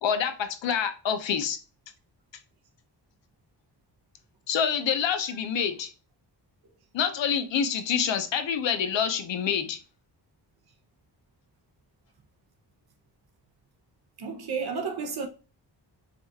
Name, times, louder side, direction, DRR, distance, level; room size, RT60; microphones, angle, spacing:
voice 1, 0.0-1.6 4.5-5.9 6.9-9.8, left 7 dB, 90° left, 0.7 m, -27 dB
voice 2, 14.2-15.3, right 5 dB, 60° right, 0.7 m, -31 dB
5.0 x 2.4 x 2.7 m
wide cardioid pair, 110°, 43 cm